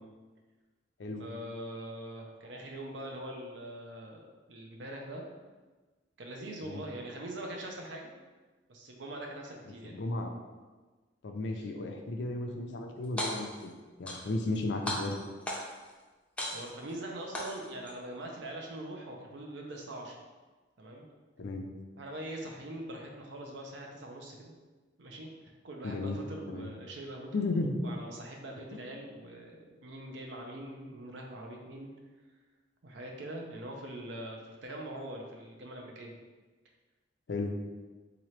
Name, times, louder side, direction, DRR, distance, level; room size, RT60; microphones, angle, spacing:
voice 1, 1.2-5.2 6.2-8.1 8.7-9.9 11.5-11.7 16.5-20.2 20.8-21.1 22.0-24.5 25.0-25.3 25.6-27.3 27.8-31.9 32.8-36.1, right 1 dB, 75° right, 1 dB, 0.6 m, -43 dB
voice 2, 9.8-10.3 11.2-13.7 14.0-15.2 21.4-21.6 25.8-26.2 26.5-26.7 27.3-27.9 28.7-28.8 37.3-37.5, left 2 dB, 70° left, 4 dB, 0.5 m, -34 dB
sound 1, 13.0-13.6 14.1-14.6 14.9-15.9 16.4-16.9 17.3-17.9, left 1 dB, 5° left, 0.5 m, -36 dB
3.7 x 2.9 x 3.1 m, 1.3 s
head